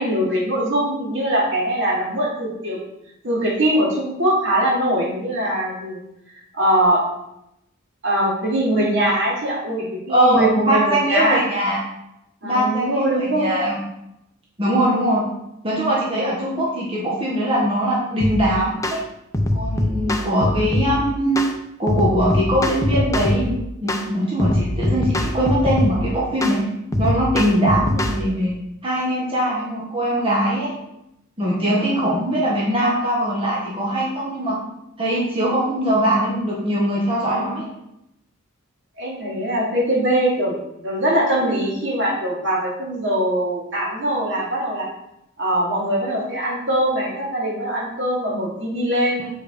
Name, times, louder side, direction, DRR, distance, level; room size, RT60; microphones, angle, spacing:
voice 1, 0.0-2.8 3.2-6.0 6.5-7.0 8.0-11.4 12.4-13.7 39.0-40.6 40.8-44.9 45.4-49.2, right 1 dB, 60° right, -4 dB, 2.5 m, -22 dB
voice 2, 10.1-11.8 12.4-13.8 14.6-15.2 15.6-19.0 19.5-21.4 21.8-26.6 27.0-28.5 28.8-30.7 31.4-34.6 35.0-37.6 49.2-49.3, right 1 dB, 25° right, -5 dB, 1.4 m, -21 dB
sound 1, 18.2-18.4 18.8-19.0 19.3-20.9 21.4-21.5 21.9-23.5 23.9-24.1 24.4-26.0 26.4-26.6 26.9-28.2, left 1 dB, 15° left, 0.6 m, -22 dB
7.3 x 4.5 x 5.1 m, 0.83 s
head